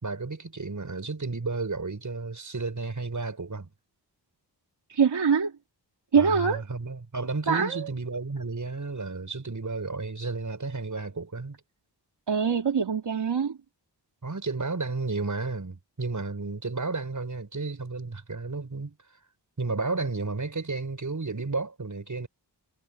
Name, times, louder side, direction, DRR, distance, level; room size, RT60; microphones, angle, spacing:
voice 1, 0.0-3.7 6.1-11.6 14.2-19.0 19.6-22.3, right 3 dB, 45° right, 6.8 m, -32 dB
voice 2, 4.9-5.5 6.1-6.6 7.5-7.9 12.3-13.6, right 6 dB, 70° right, 2.7 m, -24 dB
wide cardioid pair, 90°, 43 cm